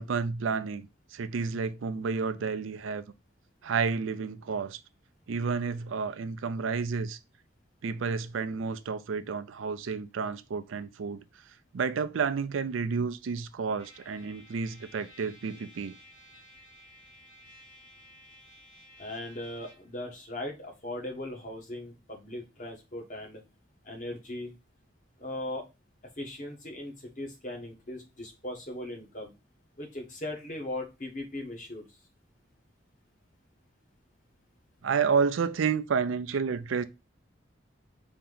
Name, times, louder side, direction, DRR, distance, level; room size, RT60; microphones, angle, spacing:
voice 1, 0.0-3.0 3.6-4.8 5.3-7.2 7.8-11.2 11.7-16.0 34.8-36.8, right 5 dB, 80° right, 0.4 m, -30 dB
Trumpet, 13.8-19.9, left 1 dB, 85° left, 1.7 m, -55 dB
voice 2, 19.0-23.4 23.8-24.5 25.2-25.6 26.2-29.3 29.8-31.9, left 1 dB, 40° left, 1.3 m, -38 dB
4.3 x 2.9 x 3.8 m
head